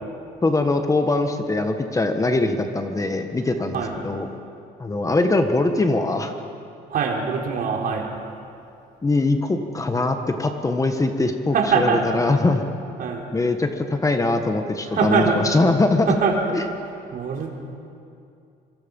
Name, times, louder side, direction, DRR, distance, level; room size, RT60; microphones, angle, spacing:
voice 1, 0.4-4.3 4.8-6.3 9.0-12.6 13.3-16.1 16.5-16.6, left 2 dB, 20° left, 6 dB, 1.5 m, -22 dB
voice 2, 6.9-8.1 11.5-12.2 13.0-13.3 14.9-15.4 16.1-16.6 17.1-17.5, right 5 dB, 60° right, 0 dB, 4.0 m, -23 dB
26.0 x 24.5 x 5.5 m, 2.5 s
cardioid pair, 110°, 17 cm